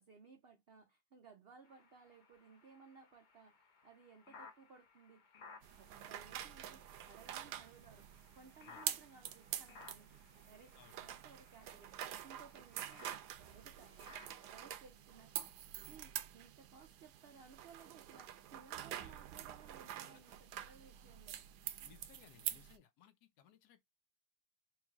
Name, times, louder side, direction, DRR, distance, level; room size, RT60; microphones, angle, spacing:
voice 1, 0.0-5.4 5.8-8.1 8.3-13.1 13.4-14.2 14.5-21.4, right 5 dB, 70° right, 0.5 m, -61 dB
sound 1, 1.6-14.7, left 4 dB, 45° left, 0.6 m, -61 dB
sound 2, 5.6-22.8, right 11 dB, 85° right, 1.1 m, -47 dB
voice 2, 21.8-23.8, left 10 dB, 80° left, 1.2 m, -63 dB
3.4 x 3.2 x 3.5 m
omnidirectional pair, 1.7 m